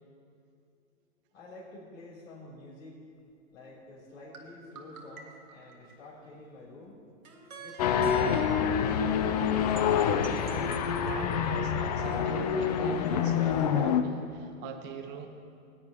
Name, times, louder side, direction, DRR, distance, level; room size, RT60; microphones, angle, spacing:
voice 1, 1.3-3.0 3.5-7.0 7.6-9.0, left 2 dB, 70° left, -5 dB, 3.2 m, -49 dB
sound 1, 4.3-6.3 7.2-8.9 9.8-11.5, right 4 dB, 85° right, 1.9 m, -47 dB
sound 2, 7.8-14.0, left 7 dB, 30° left, 0.4 m, -27 dB
voice 2, 11.0-15.3, right 6 dB, 25° right, 5 dB, 1.0 m, -42 dB
19.0 x 9.6 x 2.9 m, 2.4 s
hypercardioid pair, 135°, 41 cm